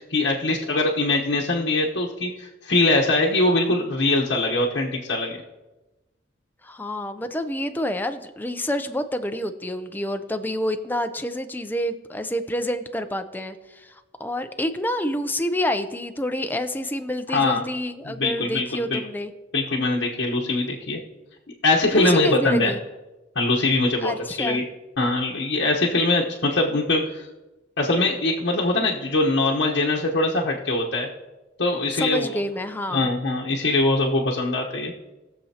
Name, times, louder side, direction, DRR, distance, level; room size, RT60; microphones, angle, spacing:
voice 1, 0.0-5.3 17.3-17.6 18.0-19.0 19.5-21.0 21.6-22.7 23.3-24.1 24.4-24.6 25.0-27.3 27.8-31.1 31.6-32.4 32.9-34.9, left 2 dB, 75° left, -3 dB, 1.0 m, -22 dB
voice 2, 6.6-19.3 21.9-22.8 24.0-24.6 31.9-33.1, left 1 dB, 10° left, 8 dB, 0.5 m, -28 dB
19.5 x 6.9 x 2.9 m, 1.1 s
head